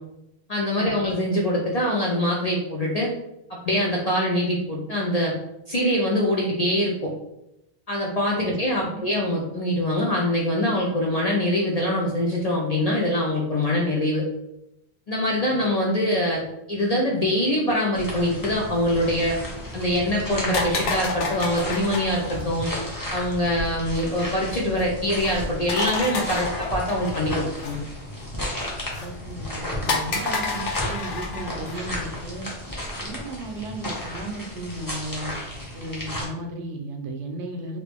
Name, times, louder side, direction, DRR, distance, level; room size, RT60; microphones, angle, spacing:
voice 1, 0.5-3.1 3.5-5.3 5.7-7.1 7.9-14.2 15.1-16.4 16.7-19.4 19.7-22.7 23.1-27.8, left 1 dB, 50° left, -3 dB, 0.4 m, -24 dB
voice 2, 8.4-9.1 29.0-32.5 33.0-35.4 35.7-37.8, right 1 dB, 80° right, 4 dB, 0.9 m, -35 dB
sound 1, 17.9-36.2, left 1 dB, 20° left, 0.7 m, -34 dB
sound 2, 18.7-32.4, left 3 dB, 80° left, 1.0 m, -32 dB
3.0 x 2.6 x 3.3 m, 0.87 s
omnidirectional pair, 1.2 m